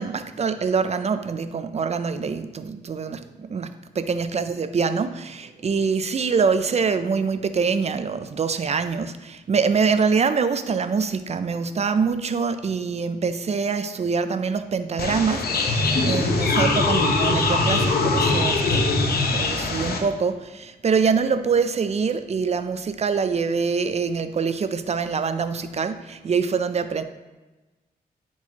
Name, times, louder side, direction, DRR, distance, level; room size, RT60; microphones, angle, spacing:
voice 1, 0.0-18.9 19.3-27.0, right 5 dB, 45° right, 11 dB, 0.5 m, -24 dB
sound 1, 15.0-20.0, left 3 dB, 80° left, 0.9 m, -22 dB
10.5 x 4.5 x 2.9 m, 1.1 s
cardioid pair, 80°, 16 cm